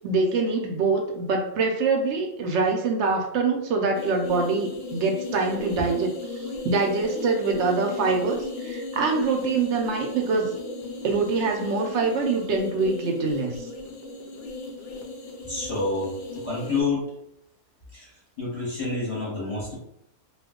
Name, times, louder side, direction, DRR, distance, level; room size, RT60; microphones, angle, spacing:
voice 1, 0.0-10.5 11.0-13.6, right 4 dB, 70° right, 2 dB, 0.7 m, -25 dB
sound 1, 3.9-16.8, left 3 dB, 70° left, 0.5 m, -36 dB
voice 2, 15.4-16.1 16.4-17.1 17.9-18.1 18.4-19.8, left 3 dB, 30° left, -6 dB, 0.8 m, -28 dB
2.3 x 2.2 x 3.5 m, 0.75 s
omnidirectional pair, 1.6 m